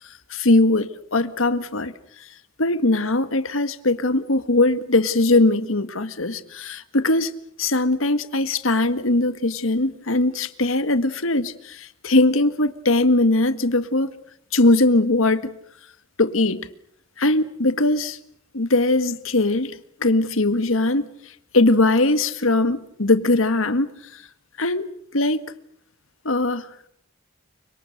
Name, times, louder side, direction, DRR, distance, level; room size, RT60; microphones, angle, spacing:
voice 1, 0.3-1.9 2.6-7.3 7.6-14.1 14.5-15.5 16.2-16.7 17.2-18.2 18.5-21.1 21.5-24.2 24.6-24.9 25.1-25.4 26.3-26.7, left 2 dB, 80° left, 1.7 m, -20 dB
30.0 x 25.5 x 6.6 m
head